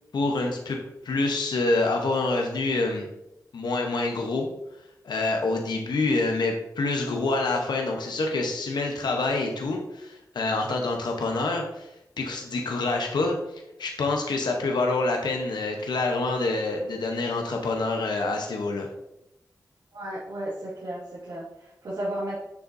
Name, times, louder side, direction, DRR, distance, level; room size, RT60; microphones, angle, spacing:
voice 1, 0.1-0.8 1.0-3.1 3.5-4.5 5.0-11.9 12.2-13.4 13.8-18.9, left 3 dB, 90° left, 2 dB, 0.9 m, -26 dB
voice 2, 19.9-22.4, right 1 dB, 85° right, -11 dB, 2.5 m, -34 dB
7.4 x 6.7 x 2.6 m, 0.85 s
wide cardioid pair, 70°, 7 cm